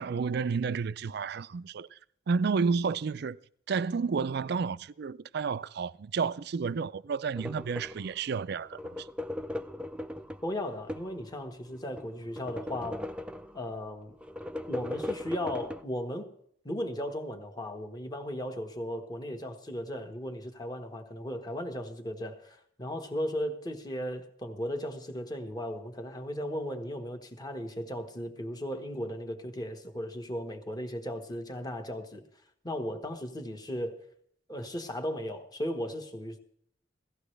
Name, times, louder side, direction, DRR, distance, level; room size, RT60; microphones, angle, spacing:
voice 1, 0.0-2.0 2.3-3.4 3.7-9.1, right 5 dB, 60° right, 0.4 m, -31 dB
sound 1, 7.3-8.1 8.6-11.2 11.7-13.7 14.2-15.8, left 1 dB, 5° right, 0.5 m, -38 dB
voice 2, 10.4-13.1 13.5-14.2 14.7-16.3 16.6-32.2 32.6-34.1 34.5-36.4, equal, 20° left, 1.4 m, -36 dB
17.0 x 14.0 x 3.3 m
head